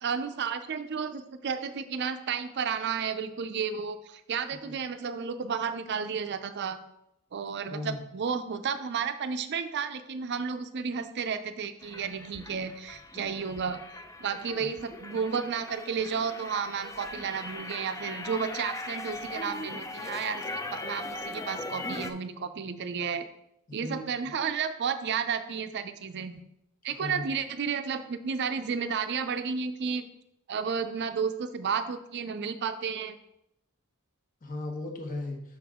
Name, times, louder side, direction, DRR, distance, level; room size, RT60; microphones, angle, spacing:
voice 1, 0.0-6.8 7.3-13.8 14.2-20.4 20.7-23.2 23.7-26.4 26.8-30.0 30.5-33.2, right 6 dB, 55° right, 9 dB, 0.5 m, -32 dB
sound 1, 11.8-22.1, left 2 dB, 15° left, 0.4 m, -40 dB
voice 2, 23.7-24.0 27.0-27.2 34.4-35.4, left 2 dB, 40° left, 2 dB, 1.1 m, -36 dB
6.2 x 6.0 x 3.6 m, 0.82 s
head